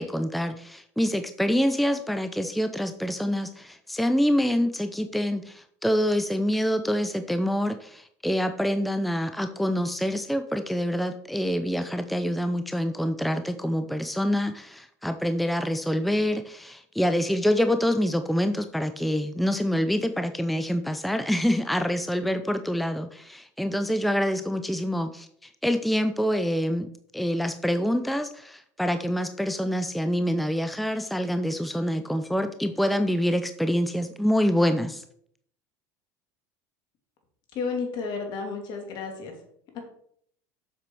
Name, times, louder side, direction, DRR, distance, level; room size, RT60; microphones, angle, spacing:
voice 1, 0.0-26.9 27.1-35.0, equal, ahead, 9 dB, 0.6 m, -26 dB
voice 2, 37.5-39.3 39.7-39.8, left 4 dB, 55° left, 4 dB, 2.7 m, -32 dB
7.5 x 6.8 x 4.7 m, 0.66 s
hypercardioid pair, 90°, 9 cm